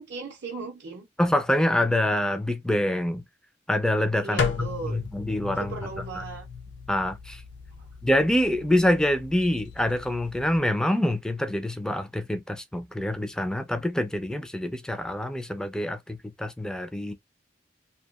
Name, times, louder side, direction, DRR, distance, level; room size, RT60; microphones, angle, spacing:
voice 1, 0.0-1.1 4.2-5.0 5.6-6.5 7.8-7.9, right 4 dB, 60° right, 0.5 m, -37 dB
voice 2, 1.2-3.2 3.7-5.7 6.2-6.3 6.9-7.4 8.0-17.1, left 1 dB, 5° left, 0.3 m, -26 dB
sound 1, 4.4-10.6, left 5 dB, 65° left, 0.4 m, -35 dB
2.7 x 2.2 x 2.3 m
head